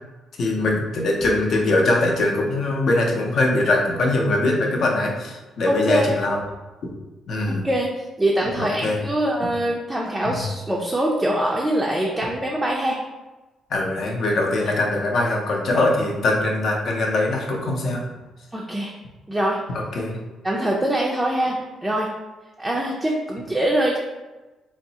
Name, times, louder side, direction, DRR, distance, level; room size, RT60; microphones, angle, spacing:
voice 1, 0.4-6.4 6.8-6.9 7.3-7.7 8.6-9.0 10.2-10.4 13.7-18.0 19.7-20.2, left 2 dB, 60° left, 0 dB, 0.6 m, -22 dB
voice 2, 5.7-6.1 7.5-7.9 8.2-13.0 18.5-18.9 19.3-19.6 20.4-21.6 21.8-22.1 22.6-24.0, right 1 dB, 15° right, -2 dB, 0.4 m, -23 dB
3.5 x 2.0 x 2.7 m, 1.1 s
cardioid pair, 90°, 0 cm